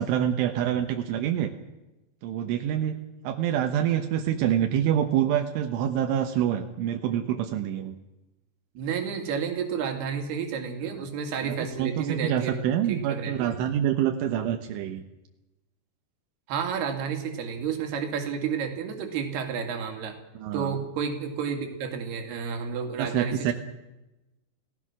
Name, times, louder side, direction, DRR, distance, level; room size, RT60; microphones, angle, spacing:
voice 1, 0.0-1.5 2.2-3.0 3.3-8.0 11.4-15.0 20.4-20.7 23.0-23.5, right 10 dB, 80° right, 5 dB, 3.5 m, -26 dB
voice 2, 8.8-12.6 12.9-13.5 16.5-20.2 20.5-23.5, right 6 dB, 60° right, 4 dB, 4.3 m, -31 dB
29.5 x 18.0 x 6.2 m, 1.0 s
omnidirectional pair, 5.5 m